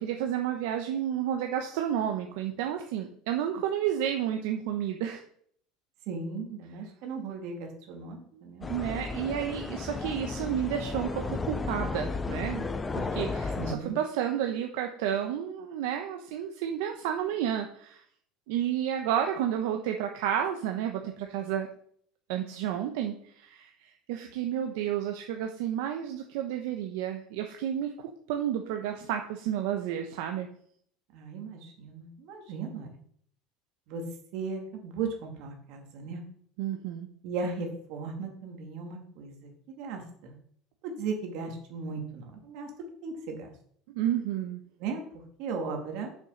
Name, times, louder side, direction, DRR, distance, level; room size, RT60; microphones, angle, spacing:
voice 1, 0.0-5.2 8.6-18.0 18.5-21.7 22.3-30.5 36.6-37.1 43.9-44.6, right 10 dB, 75° right, 4 dB, 0.9 m, -31 dB
voice 2, 6.1-8.7 13.6-14.0 31.1-32.9 33.9-34.0 34.3-36.2 37.2-39.5 39.8-40.4 40.8-42.7 43.0-43.5 44.8-45.0 45.4-46.2, right 4 dB, 55° right, 2 dB, 2.3 m, -36 dB
sound 1, 8.6-13.7, left 4 dB, 15° left, 0.5 m, -33 dB
6.6 x 6.3 x 5.7 m, 0.62 s
cardioid pair, 165°, 0 cm